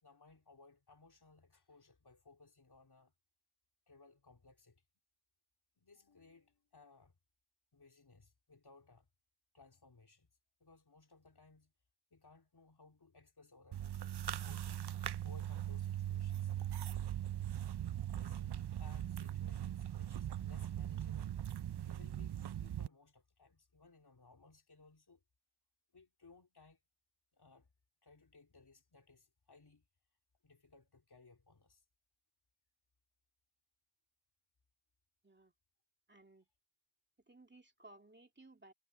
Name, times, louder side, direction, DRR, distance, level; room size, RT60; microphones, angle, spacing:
voice 1, 0.0-3.1 3.9-4.8 5.8-7.2 7.7-9.1 9.5-10.3 10.6-11.7 12.1-14.9 15.2-16.5 17.4-17.8 18.1-21.4 21.8-25.2 25.9-26.8 27.3-27.7 28.0-29.9 30.4-31.8, left 3 dB, 70° left, 4.0 m, -63 dB
sound 1, 13.7-22.9, right 11 dB, 75° right, 0.6 m, -40 dB
voice 2, 36.1-36.5 37.3-38.7, right 2 dB, 25° right, 2.3 m, -60 dB
wide cardioid pair, 80°, 41 cm